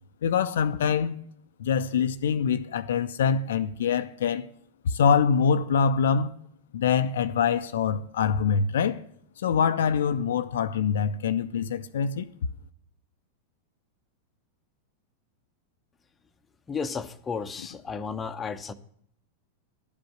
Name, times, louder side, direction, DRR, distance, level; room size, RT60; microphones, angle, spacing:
voice 1, 0.2-1.2 1.6-4.5 4.8-6.4 6.7-9.0 9.4-12.3, left 6 dB, 60° left, 0.4 m, -24 dB
voice 2, 16.7-18.7, left 5 dB, 15° left, 0.6 m, -33 dB
12.0 x 5.2 x 8.6 m
figure-of-eight pair, 90°, 0 cm